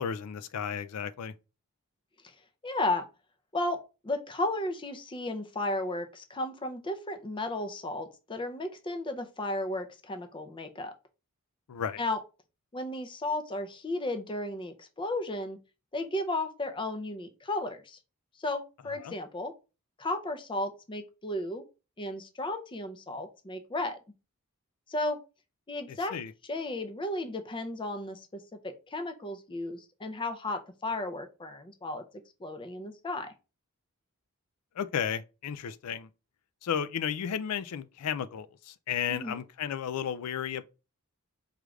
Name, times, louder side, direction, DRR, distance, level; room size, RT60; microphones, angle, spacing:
voice 1, 0.0-1.3 11.7-12.0 19.0-19.1 25.9-26.3 34.8-36.1 36.6-40.6, left 8 dB, 85° left, 0.4 m, -33 dB
voice 2, 2.6-3.0 3.5-3.8 4.0-10.9 12.0-12.2 12.7-15.6 15.9-18.0 18.4-19.5 20.0-21.6 22.0-24.0 24.9-25.2 25.7-26.1 26.4-32.0 32.4-33.3 39.1-39.4, left 2 dB, 20° left, 0.5 m, -34 dB
4.8 x 2.4 x 3.1 m
head